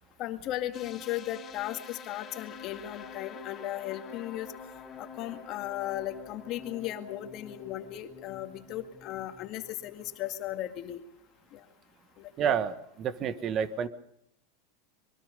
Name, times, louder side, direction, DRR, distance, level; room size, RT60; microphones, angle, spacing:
voice 1, 0.2-4.5 5.0-11.0 11.5-11.6 12.2-12.6, left 13 dB, 45° left, 7 dB, 2.0 m, -36 dB
sound 1, 0.7-10.6, left 6 dB, 25° left, 4.0 m, -48 dB
voice 2, 12.4-13.9, right 8 dB, 35° right, 13 dB, 1.5 m, -29 dB
25.0 x 23.0 x 5.3 m, 0.71 s
supercardioid pair, 135°, 0 cm